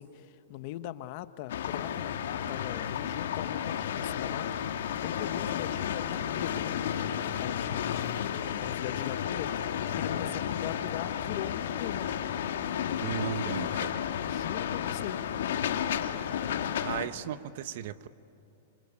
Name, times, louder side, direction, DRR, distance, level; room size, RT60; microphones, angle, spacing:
voice 1, 0.0-6.8 7.1-12.1 14.3-15.2, left 14 dB, 45° left, 11 dB, 1.1 m, -41 dB
sound 1, 1.5-17.1, left 9 dB, 80° left, 1.8 m, -32 dB
voice 2, 13.0-13.9 15.8-15.9 16.8-18.1, right 10 dB, 55° right, 14 dB, 0.9 m, -36 dB
27.0 x 26.0 x 8.5 m, 2.8 s
supercardioid pair, 160°, 0 cm